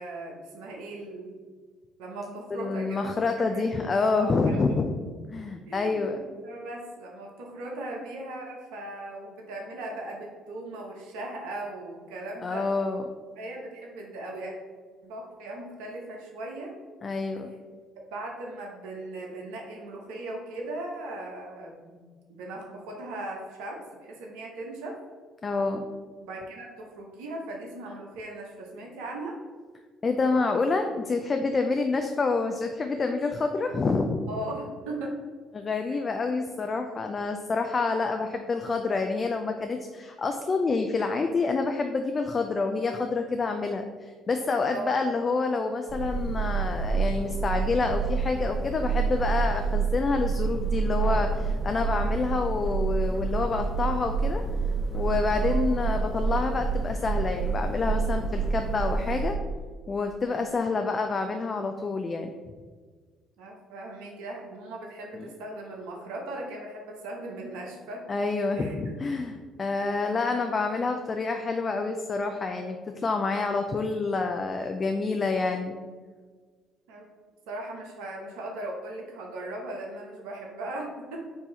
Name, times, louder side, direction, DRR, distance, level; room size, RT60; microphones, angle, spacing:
voice 1, 0.0-1.3 2.0-3.1 3.4-3.6 4.2-4.6 5.7-12.7 13.4-14.5 15.0-16.8 18.1-22.0 22.3-25.0 26.2-29.4 34.3-35.2 44.7-45.0 55.4-55.7 60.4-60.5 63.4-68.0 68.5-69.3 76.9-77.1 77.5-81.3, right 2 dB, 80° right, 0 dB, 0.7 m, -38 dB
voice 2, 2.5-4.9 5.3-6.2 12.4-13.0 17.0-17.5 25.4-25.8 30.0-34.3 35.5-43.9 44.3-54.4 54.9-59.4 59.9-62.3 65.1-65.3 68.1-72.8 73.0-75.8, left 3 dB, 40° left, 5 dB, 0.4 m, -27 dB
sound 1, 45.9-59.3, right 5 dB, 10° right, 1.0 m, -28 dB
4.6 x 2.7 x 4.3 m, 1.5 s
hypercardioid pair, 60°, 0 cm